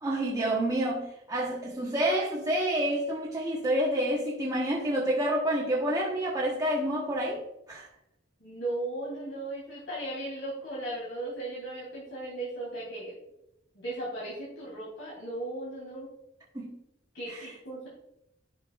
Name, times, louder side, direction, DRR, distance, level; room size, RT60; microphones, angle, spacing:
voice 1, 0.0-7.4 7.7-7.9 16.5-16.8 17.3-17.5, right 1 dB, 20° right, 1.2 m, -28 dB
voice 2, 8.4-13.2 13.7-16.1 17.1-17.9, right 1 dB, 70° left, 3.1 m, -36 dB
11.5 x 5.6 x 2.4 m
head